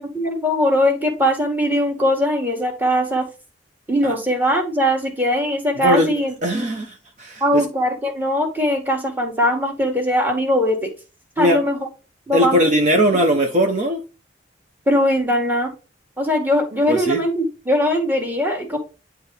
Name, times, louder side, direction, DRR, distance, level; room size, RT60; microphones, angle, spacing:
voice 1, 0.0-3.3 3.9-6.3 7.4-10.9 11.4-11.9 12.3-12.6 14.9-15.7 16.2-18.8, equal, 10° right, 1.6 m, -20 dB
voice 2, 5.7-6.1 6.4-7.6 11.4-11.6 12.3-14.0 16.9-17.2, equal, 40° right, 0.8 m, -19 dB
10.0 x 3.4 x 3.3 m
head